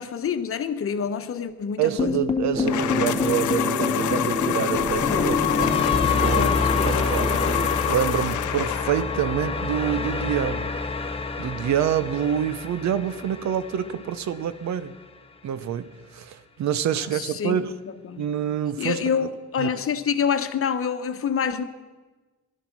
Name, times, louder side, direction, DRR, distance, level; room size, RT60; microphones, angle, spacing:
voice 1, 0.0-2.2 5.1-5.9 6.3-7.0 17.0-17.7 18.1-18.3 18.8-21.6, left 7 dB, 45° left, 1.0 m, -27 dB
voice 2, 1.8-6.5 6.8-7.3 7.9-10.7 11.4-14.9 15.4-17.7 18.2-19.1 19.6-19.7, right 9 dB, 65° right, 0.8 m, -27 dB
sound 1, 2.0-14.2, left 4 dB, 20° left, 1.0 m, -27 dB
sound 2, 2.5-7.7, equal, 15° right, 1.5 m, -29 dB
sound 3, 2.7-9.2, left 13 dB, 75° left, 0.7 m, -28 dB
16.5 x 12.0 x 6.0 m
cardioid pair, 90°, 30 cm